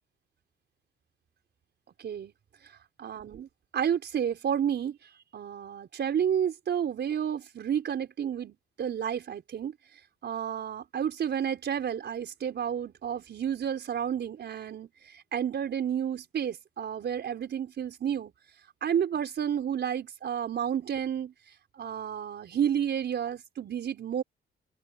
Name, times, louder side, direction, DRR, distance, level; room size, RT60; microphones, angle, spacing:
voice 1, 2.0-2.3 3.0-5.0 5.3-9.7 10.2-18.3 18.8-21.3 21.8-24.2, right 9 dB, 60° right, 5.0 m, -31 dB
cardioid pair, 90°, 20 cm